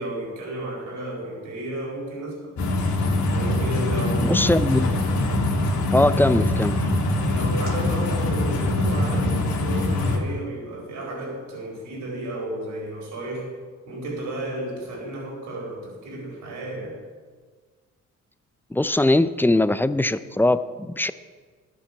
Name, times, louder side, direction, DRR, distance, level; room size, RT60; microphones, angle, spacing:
voice 1, 0.0-2.5 3.3-4.4 7.2-13.5 13.9-17.0, right 1 dB, 80° right, -2 dB, 4.5 m, -33 dB
sound 1, 2.6-10.2, left 2 dB, 70° left, 2.1 m, -23 dB
voice 2, 4.2-4.9 5.9-6.8 18.7-21.1, left 1 dB, 5° left, 14 dB, 0.4 m, -21 dB
12.0 x 7.4 x 7.0 m, 1.5 s
cardioid pair, 90°, 30 cm